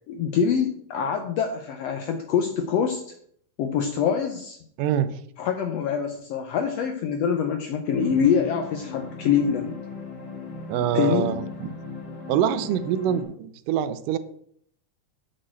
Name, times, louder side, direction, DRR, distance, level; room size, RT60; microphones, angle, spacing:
voice 1, 0.1-3.0 3.6-4.6 5.4-9.7 10.9-11.3, left 7 dB, 75° left, 6 dB, 1.4 m, -24 dB
voice 2, 4.8-5.2 10.7-11.7 12.3-14.2, right 10 dB, 90° right, 13 dB, 2.3 m, -25 dB
sound 1, 7.9-13.2, left 4 dB, 40° left, 2.5 m, -38 dB
6.6 x 6.3 x 7.6 m, 0.66 s
omnidirectional pair, 3.7 m